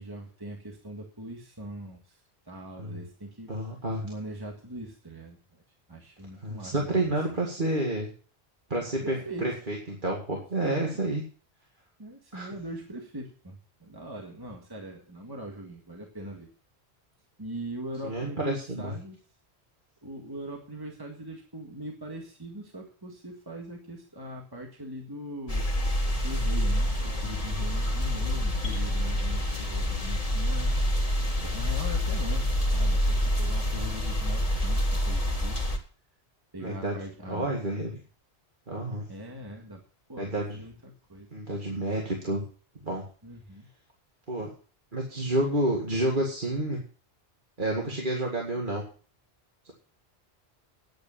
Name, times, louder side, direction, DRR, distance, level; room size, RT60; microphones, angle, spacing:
voice 1, 0.0-2.2 2.5-3.5 4.0-5.6 5.9-7.4 9.0-9.6 10.6-11.0 12.0-16.5 17.4-19.2 20.0-25.7 26.2-30.9 31.4-35.6 36.5-37.5 39.1-39.8 40.1-41.3 43.2-43.7, right 1 dB, 20° right, 1 dB, 1.8 m, -41 dB
voice 2, 3.5-4.0 6.4-8.1 8.7-11.2 12.3-12.5 18.0-18.9 33.7-33.9 36.6-37.0 37.3-38.0 38.7-39.1 40.2-40.6 41.3-42.4 42.8-43.0 44.3-44.5 44.9-46.8 47.6-48.8, right 1 dB, 50° right, -1 dB, 2.3 m, -29 dB
sound 1, 25.5-35.8, left 1 dB, 35° left, 2.3 m, -27 dB
10.5 x 8.7 x 7.0 m, 0.41 s
omnidirectional pair, 1.1 m